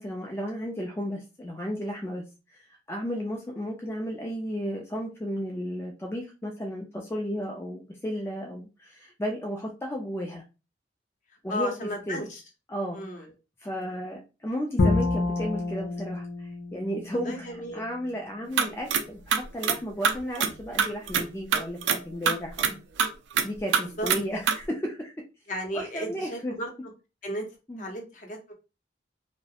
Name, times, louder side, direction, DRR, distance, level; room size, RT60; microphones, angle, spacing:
voice 1, 0.0-2.2 2.5-2.6 2.9-10.4 11.4-12.2 12.7-13.3 13.6-22.8 23.4-25.1 25.7-26.5 27.7-27.9, equal, 15° left, 0 dB, 0.3 m, -34 dB
voice 2, 11.5-12.4 12.9-13.3 17.2-17.8 24.0-24.1 25.5-26.7 27.2-27.4 27.8-28.5, equal, 45° left, 1 dB, 0.7 m, -34 dB
Bowed string instrument, 14.8-17.9, left 2 dB, 90° left, 0.5 m, -28 dB
sound 1, 18.6-19.0 19.3-19.8 20.0-21.3 21.5-22.0 22.3-22.7 23.0-23.5 23.7-24.2 24.5-24.6, right 7 dB, 90° right, 0.4 m, -24 dB
2.3 x 2.0 x 2.8 m, 0.30 s
head